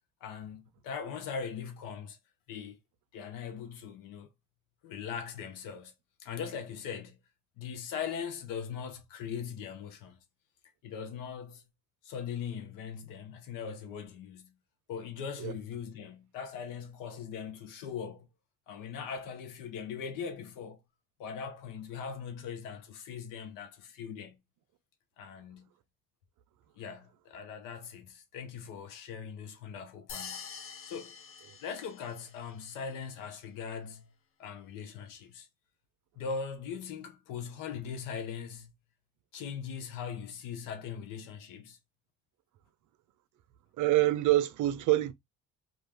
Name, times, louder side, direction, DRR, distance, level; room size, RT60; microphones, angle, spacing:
voice 1, 0.2-2.2 2.5-2.8 3.1-4.3 4.8-5.9 6.2-7.2 7.6-10.2 10.8-11.6 12.0-14.6 14.9-18.3 18.7-20.8 21.2-24.4 25.2-25.7 26.7-30.4 30.9-31.2 31.6-34.1 34.4-35.5 36.2-38.7 39.3-41.8, left 6 dB, 85° left, 0.8 m, -40 dB
sound 1, 30.1-32.4, left 6 dB, 45° left, 0.6 m, -45 dB
voice 2, 43.8-45.1, right 16 dB, 65° right, 0.5 m, -26 dB
2.4 x 2.3 x 3.2 m
supercardioid pair, 75°, 32 cm